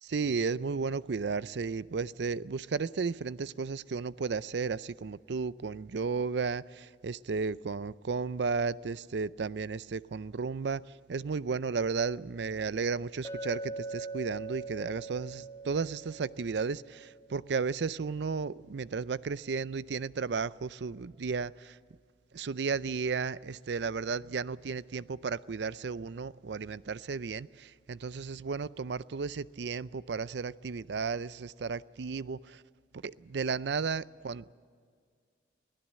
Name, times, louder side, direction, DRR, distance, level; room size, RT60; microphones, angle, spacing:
voice 1, 0.0-21.8 22.3-32.6 32.9-34.5, right 5 dB, 65° right, 0.5 m, -34 dB
Chink clink, 13.2-17.5, right 3 dB, 15° left, 1.0 m, -42 dB
24.5 x 16.0 x 7.5 m
head